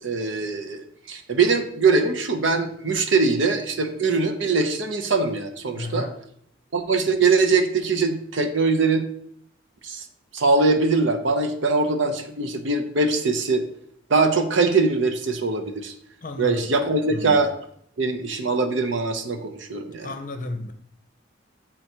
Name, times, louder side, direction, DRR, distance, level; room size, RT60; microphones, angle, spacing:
voice 1, 0.0-6.1 6.7-9.1 9.8-10.0 10.3-13.6 14.1-15.9 16.4-17.5 18.0-20.1, right 3 dB, 65° right, 0.8 m, -22 dB
voice 2, 5.8-6.2 16.2-16.7 17.1-17.4 20.0-20.7, left 2 dB, 45° left, 0.7 m, -32 dB
7.9 x 3.8 x 4.4 m
head